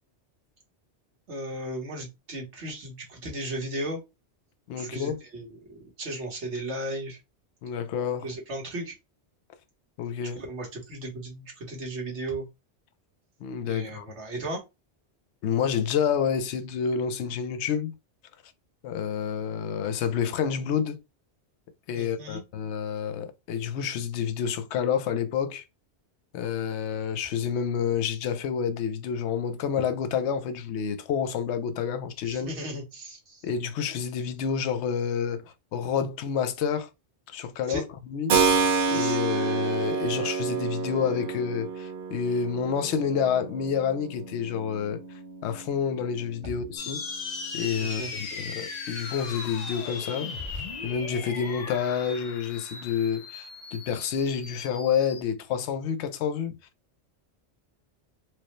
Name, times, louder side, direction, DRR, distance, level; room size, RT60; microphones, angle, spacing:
voice 1, 1.3-4.0 4.8-7.2 8.2-8.9 10.3-12.4 13.7-14.6 21.9-22.4 32.2-33.5 37.7-37.8 38.9-39.2 47.8-48.1, right 1 dB, 75° right, 1.6 m, -36 dB
voice 2, 4.7-5.2 7.6-8.3 10.0-10.4 13.4-14.0 15.4-17.9 18.8-21.0 21.9-25.6 26.3-32.5 33.4-35.4 35.7-36.9 37.3-38.4 38.9-45.0 45.4-47.0 47.5-48.0 48.3-56.6, left 7 dB, 80° left, 0.9 m, -29 dB
Keyboard (musical), 38.3-46.9, right 5 dB, 55° right, 0.8 m, -29 dB
sound 1, 46.8-55.2, left 4 dB, 45° left, 0.7 m, -37 dB
4.6 x 2.1 x 3.0 m
omnidirectional pair, 1.2 m